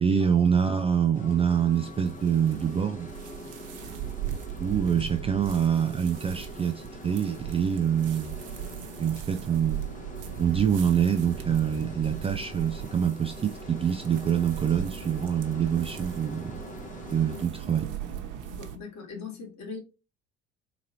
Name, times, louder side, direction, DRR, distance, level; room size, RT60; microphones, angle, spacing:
voice 1, 0.0-3.1 4.6-8.4 9.0-9.8 10.4-16.6 17.1-17.9, right 8 dB, 15° right, 0.4 m, -25 dB
sound 1, 1.0-18.8, right 10 dB, 55° right, 0.9 m, -39 dB
sound 2, 1.1-17.5, left 2 dB, 20° left, 0.9 m, -44 dB
voice 2, 18.5-19.8, left 5 dB, 45° left, 2.0 m, -40 dB
3.9 x 3.8 x 2.7 m
figure-of-eight pair, 60°, 37 cm